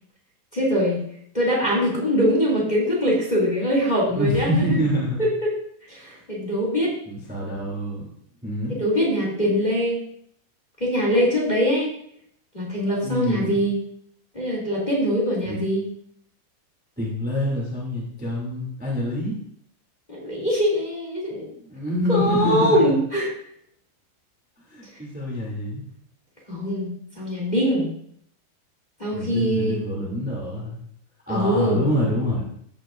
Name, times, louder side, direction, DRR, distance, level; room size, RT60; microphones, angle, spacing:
voice 1, 0.5-1.0 1.3-4.8 5.2-5.5 5.9-6.9 8.7-10.0 10.8-11.9 12.5-13.7 14.3-15.8 20.1-21.5 22.1-23.3 26.5-27.9 29.0-29.8 31.3-31.8, equal, 15° left, -4 dB, 2.0 m, -22 dB
voice 2, 4.1-5.2 6.0-6.2 7.0-8.0 8.4-8.7 12.9-13.6 15.4-15.6 17.0-19.4 21.3-22.9 24.6-25.8 29.1-30.8 31.3-32.4, equal, 5° right, -4 dB, 1.3 m, -26 dB
14.5 x 9.2 x 2.6 m, 0.67 s
omnidirectional pair, 5.2 m